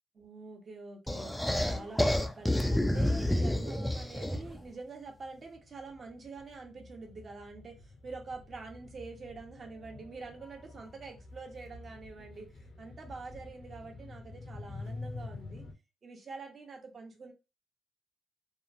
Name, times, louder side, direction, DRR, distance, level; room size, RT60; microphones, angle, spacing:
voice 1, 0.1-15.6 16.0-17.3, right 4 dB, 45° right, 0.8 m, -46 dB
sound 1, 1.1-4.6, left 1 dB, 5° left, 0.3 m, -29 dB
sound 2, 4.7-4.8 5.0-15.7, left 3 dB, 55° left, 0.6 m, -48 dB
2.8 x 2.0 x 2.5 m
cardioid pair, 90°, 0 cm